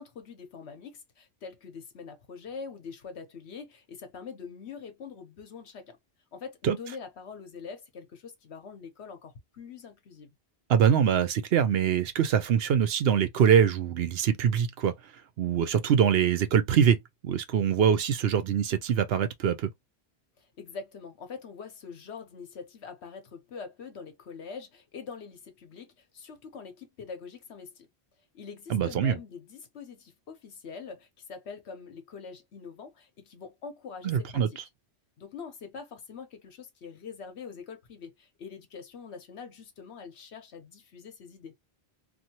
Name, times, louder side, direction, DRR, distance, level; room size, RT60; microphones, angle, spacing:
voice 1, 0.0-6.0 6.3-10.3 20.4-27.9 28.3-34.5 35.2-41.5, left 5 dB, 75° left, 1.2 m, -44 dB
voice 2, 10.7-14.9 15.4-19.7 28.7-29.2 34.0-34.5, right 8 dB, 70° right, 0.8 m, -24 dB
2.7 x 2.6 x 2.8 m
omnidirectional pair, 1.1 m